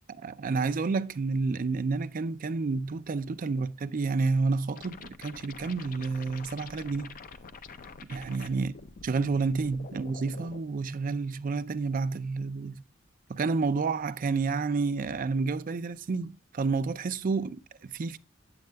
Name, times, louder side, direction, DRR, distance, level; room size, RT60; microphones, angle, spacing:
voice 1, 0.2-7.2 8.1-8.7 9.0-12.8 13.3-18.2, right 4 dB, 45° right, 0.4 m, -30 dB
sound 1, 4.8-10.6, left 4 dB, 45° left, 0.5 m, -46 dB
8.2 x 7.8 x 2.3 m
head